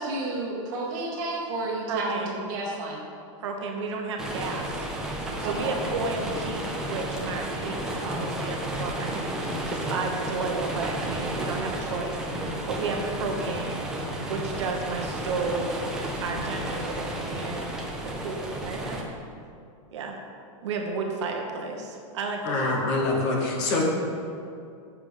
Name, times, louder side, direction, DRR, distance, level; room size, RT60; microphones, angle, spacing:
voice 1, 0.0-3.0 5.4-5.7, right 2 dB, 35° right, -3 dB, 1.7 m, -31 dB
voice 2, 1.9-2.4 3.4-4.9 5.4-15.9 16.2-17.9 18.2-19.0 19.9-20.2 20.6-22.8, right 4 dB, 60° right, 2 dB, 1.0 m, -32 dB
sound 1, 4.2-19.0, right 1 dB, 5° right, 0.5 m, -32 dB
voice 3, 22.4-23.8, left 3 dB, 30° left, 0 dB, 1.0 m, -25 dB
7.5 x 7.0 x 4.9 m, 2.4 s
supercardioid pair, 180°, 17 cm